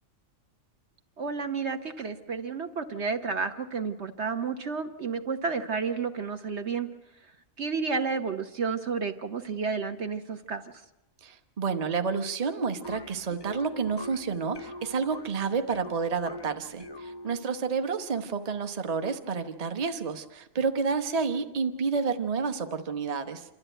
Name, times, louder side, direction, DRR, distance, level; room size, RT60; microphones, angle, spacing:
voice 1, 1.2-6.9 7.6-10.6, right 5 dB, 55° right, 6 dB, 1.3 m, -31 dB
voice 2, 11.2-23.4, right 5 dB, 30° right, 7 dB, 1.0 m, -30 dB
sound 1, 12.8-17.6, left 2 dB, 25° left, 0.5 m, -43 dB
27.5 x 13.0 x 9.0 m, 0.94 s
omnidirectional pair, 1.4 m